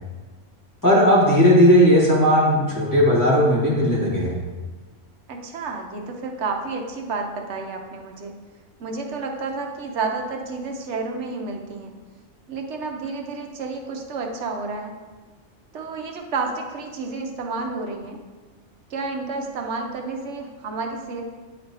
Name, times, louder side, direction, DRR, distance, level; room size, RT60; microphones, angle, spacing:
voice 1, 0.8-4.3, equal, 15° left, -8 dB, 1.7 m, -16 dB
voice 2, 5.3-8.3 8.8-11.9 12.5-14.9 15.7-18.2 18.9-21.2, right 4 dB, 70° right, 3 dB, 1.1 m, -30 dB
8.9 x 3.3 x 4.0 m, 1.3 s
omnidirectional pair, 1.3 m